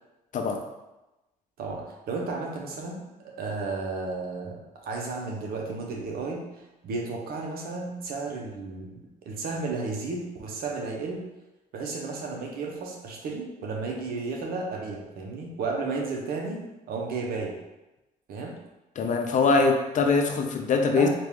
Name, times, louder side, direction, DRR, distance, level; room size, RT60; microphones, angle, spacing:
voice 1, 1.6-3.0 3.4-11.3 11.7-16.6 16.9-17.6 18.3-18.6 21.0-21.1, right 3 dB, 75° right, 0 dB, 0.9 m, -33 dB
voice 2, 19.0-21.1, left 4 dB, 55° left, 4 dB, 0.6 m, -23 dB
4.2 x 2.5 x 3.6 m, 1.0 s
cardioid pair, 80°, 16 cm